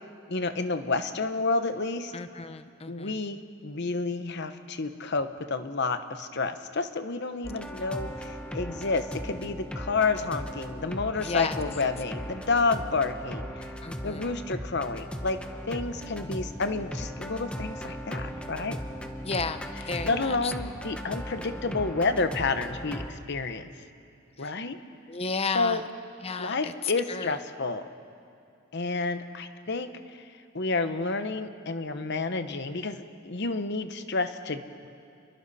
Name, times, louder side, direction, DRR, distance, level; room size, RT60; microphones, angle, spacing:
voice 1, 0.3-2.1 2.9-13.5 14.0-15.4 15.7-18.8 20.0-23.7 24.4-24.8 25.5-25.8 26.4-27.9 28.7-29.9 30.5-34.9, left 3 dB, 55° left, 9 dB, 1.0 m, -30 dB
voice 2, 2.1-3.2 11.2-11.6 13.8-14.3 19.2-20.5 24.4-24.5 25.1-25.9 26.2-26.7 27.1-27.4, left 4 dB, 30° left, 10 dB, 0.7 m, -33 dB
sound 1, 7.4-23.1, equal, 5° left, 1.0 m, -37 dB
29.5 x 22.5 x 4.2 m, 2.4 s
head